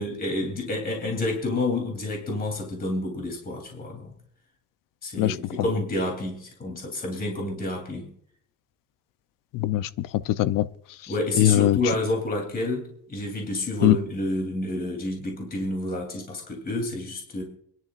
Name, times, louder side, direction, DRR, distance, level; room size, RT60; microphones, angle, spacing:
voice 1, 0.0-4.1 5.0-8.1 11.1-17.4, left 2 dB, 30° left, 2 dB, 3.0 m, -29 dB
voice 2, 5.2-5.7 9.5-10.7 11.0-11.1 11.4-11.8 13.8-14.0, left 14 dB, 90° left, 14 dB, 0.7 m, -22 dB
27.0 x 11.0 x 2.5 m, 0.65 s
cardioid pair, 150°, 32 cm